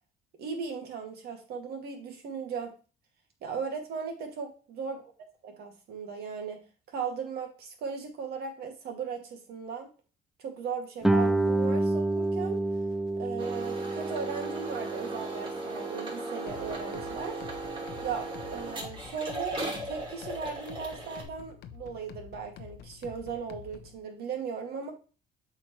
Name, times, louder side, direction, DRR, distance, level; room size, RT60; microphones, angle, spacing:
voice 1, 0.4-2.7 3.4-5.1 5.4-6.6 6.9-9.9 10.4-12.6 13.2-17.4 18.0-24.9, right 6 dB, 70° right, 3 dB, 2.1 m, -37 dB
Guitar, 11.0-16.4, right 2 dB, ahead, 0.3 m, -29 dB
sound 1, 13.4-21.2, right 2 dB, 30° right, 2.8 m, -37 dB
sound 2, 16.5-24.0, left 8 dB, 75° left, 0.7 m, -48 dB
7.7 x 4.8 x 3.1 m, 0.35 s
cardioid pair, 110°, 17 cm